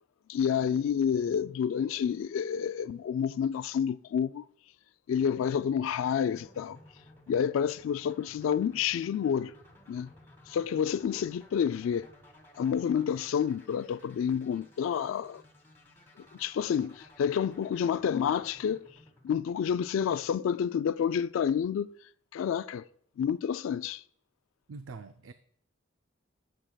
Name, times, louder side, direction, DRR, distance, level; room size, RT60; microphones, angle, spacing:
voice 1, 0.3-4.4 5.1-6.8 7.3-9.5 9.9-10.1 10.5-12.1 12.6-15.4 16.3-18.8 19.2-21.9 22.3-22.9 23.2-24.0, left 8 dB, 80° left, 0.3 m, -29 dB
sound 1, 5.2-20.1, left 1 dB, 10° left, 2.0 m, -57 dB
voice 2, 24.7-25.3, right 4 dB, 80° right, 0.4 m, -44 dB
16.0 x 6.5 x 2.3 m
head